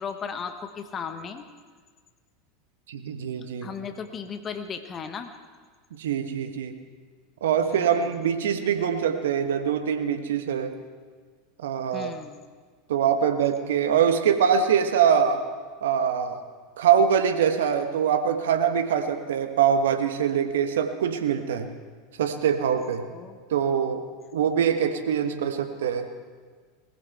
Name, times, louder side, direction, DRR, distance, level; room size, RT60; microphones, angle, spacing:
voice 1, 0.0-1.4 3.6-5.3 7.6-8.2 11.9-12.4 23.1-23.4, left 6 dB, 30° left, 8 dB, 1.1 m, -36 dB
voice 2, 2.9-3.7 5.9-6.7 7.4-10.7 11.6-12.1 12.9-15.4 15.8-16.4 16.8-21.7 22.2-23.0 23.5-24.1 24.3-26.1, right 8 dB, 70° right, 8 dB, 1.3 m, -23 dB
20.0 x 15.0 x 4.5 m, 1.5 s
figure-of-eight pair, 85°, 0 cm